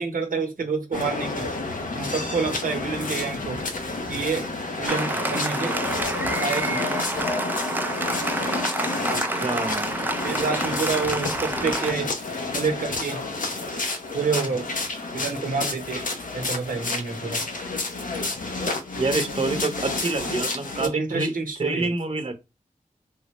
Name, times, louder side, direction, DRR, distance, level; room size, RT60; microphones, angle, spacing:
voice 1, 0.0-1.5 1.9-3.6 4.1-4.5 4.8-5.9 6.4-7.0 7.6-7.7 10.2-12.3 12.5-13.2 14.1-14.7 15.1-16.0 16.3-17.5 20.8-21.9, right 4 dB, 75° right, 0.7 m, -28 dB
sound 1, 0.9-20.9, left 3 dB, 70° left, 0.7 m, -30 dB
Applause, 4.9-11.9, right 2 dB, 15° right, 0.4 m, -29 dB
voice 2, 9.1-9.9 19.0-21.3 21.6-22.3, right 3 dB, 45° right, 0.7 m, -27 dB
3.5 x 2.1 x 2.9 m
wide cardioid pair, 65°, 14 cm